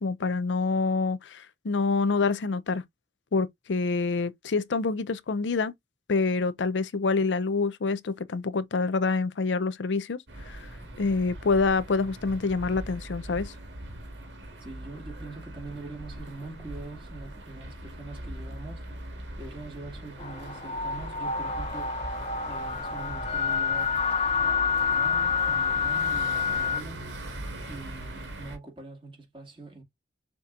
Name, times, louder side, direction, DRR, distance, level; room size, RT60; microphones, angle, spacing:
voice 1, 0.0-2.8 3.3-5.7 6.1-10.7 11.0-13.5, left 4 dB, 80° left, 0.5 m, -27 dB
sound 1, 10.3-28.6, right 1 dB, 75° right, 1.6 m, -41 dB
voice 2, 14.6-18.9 19.4-21.9 22.5-24.0 24.4-27.1 27.7-29.8, right 2 dB, 30° right, 2.0 m, -43 dB
sound 2, 20.2-26.8, left 6 dB, 35° left, 0.6 m, -28 dB
6.8 x 2.8 x 2.4 m
head